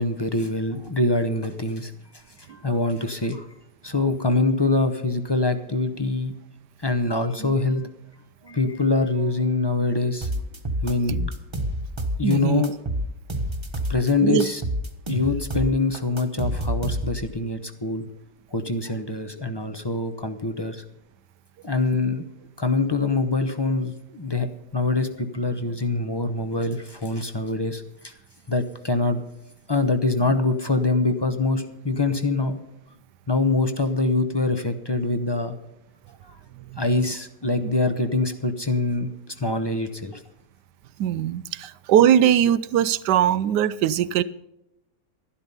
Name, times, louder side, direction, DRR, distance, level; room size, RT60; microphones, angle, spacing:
voice 1, 0.0-1.9 2.5-3.5 3.8-6.3 6.8-7.8 8.4-10.3 10.8-11.3 12.2-12.7 13.9-14.6 15.1-18.0 18.5-20.8 21.6-22.3 22.6-24.5 24.7-28.1 28.5-29.2 29.7-32.6 33.3-35.6 36.8-39.1 39.4-40.2, left 3 dB, 25° left, 9 dB, 0.6 m, -24 dB
sound 1, 10.2-12.4 12.6-14.1 14.4-17.3, right 1 dB, 20° right, 1.2 m, -28 dB
voice 2, 12.2-12.6 14.2-14.4 36.7-36.8 37.6-37.7 41.0-44.2, right 10 dB, 85° right, 17 dB, 1.3 m, -20 dB
12.0 x 11.5 x 5.5 m, 0.85 s
omnidirectional pair, 1.8 m